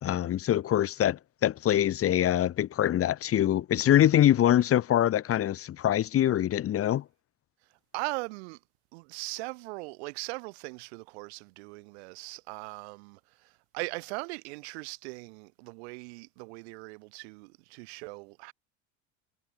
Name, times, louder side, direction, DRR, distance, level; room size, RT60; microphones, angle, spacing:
voice 1, 0.0-7.0, left 11 dB, 45° left, 2.3 m, -24 dB
voice 2, 7.9-8.6 8.9-18.5, right 27 dB, 80° right, 3.9 m, -39 dB
supercardioid pair, 95°, 32 cm